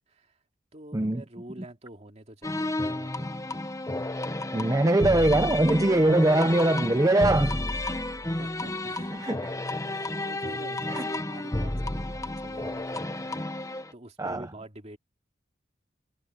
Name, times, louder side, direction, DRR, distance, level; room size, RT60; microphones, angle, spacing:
voice 1, 0.1-0.4 0.7-3.4 8.2-9.3 9.9-13.3 13.9-15.0, right 1 dB, 35° right, 2.6 m, -47 dB
sound 1, 2.4-13.9, left 1 dB, 15° left, 1.1 m, -31 dB
voice 2, 4.5-7.6 9.2-9.5 10.9-11.1 14.2-14.5, right 1 dB, 20° right, 0.7 m, -22 dB
head